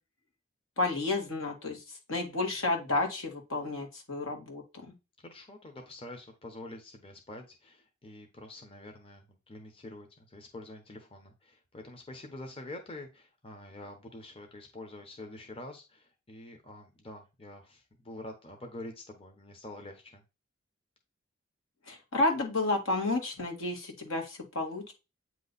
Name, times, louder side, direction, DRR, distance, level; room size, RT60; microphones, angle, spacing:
voice 1, 0.8-1.8 2.1-4.9 21.9-24.9, left 2 dB, 75° left, 3 dB, 1.8 m, -31 dB
voice 2, 5.2-20.2, left 1 dB, 30° left, 3 dB, 0.9 m, -46 dB
8.5 x 3.1 x 4.0 m, 0.28 s
head